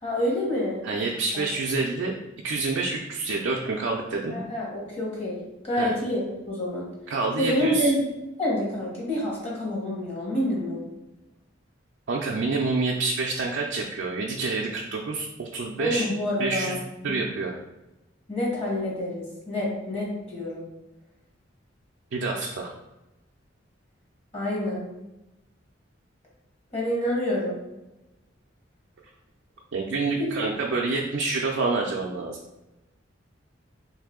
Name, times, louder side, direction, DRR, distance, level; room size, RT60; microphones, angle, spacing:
voice 1, 0.0-0.8 1.3-1.4 4.3-5.4 5.6-6.8 7.4-8.1 8.4-10.9 15.8-16.8 18.3-20.6 24.3-24.8 26.7-27.6 30.2-30.3, left 1 dB, 30° left, -5 dB, 1.1 m, -27 dB
voice 2, 0.8-4.4 5.7-5.9 7.1-7.9 12.1-16.1 16.4-16.7 17.0-17.6 22.1-22.7 29.7-32.4, right 3 dB, 70° right, -1 dB, 0.4 m, -27 dB
3.2 x 2.7 x 3.6 m, 1.0 s
head